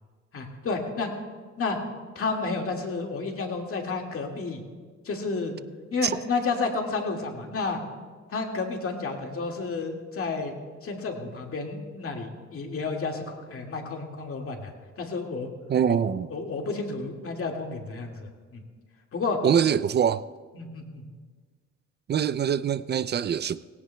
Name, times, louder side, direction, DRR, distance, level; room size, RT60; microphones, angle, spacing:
voice 1, 0.3-1.1 1.6-1.8 2.2-4.6 5.0-5.5 5.9-7.8 8.3-10.5 10.8-15.5 15.9-16.0 16.3-18.6 19.1-19.4 20.5-21.0, left 4 dB, 50° left, 2.0 m, -31 dB
voice 2, 15.7-16.3 19.4-20.2 22.1-23.6, right 8 dB, 35° right, 0.4 m, -24 dB
18.0 x 16.5 x 2.2 m
cardioid pair, 90°, 30 cm